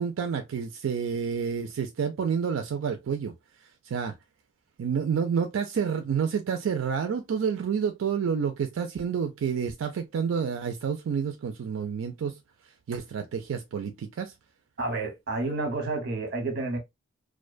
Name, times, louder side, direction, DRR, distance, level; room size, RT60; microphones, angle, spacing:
voice 1, 0.0-3.3 3.8-4.1 4.8-12.4 12.9-14.3, right 7 dB, 90° right, 0.4 m, -29 dB
voice 2, 14.8-16.8, right 2 dB, 55° right, 0.9 m, -30 dB
2.4 x 2.1 x 2.3 m
head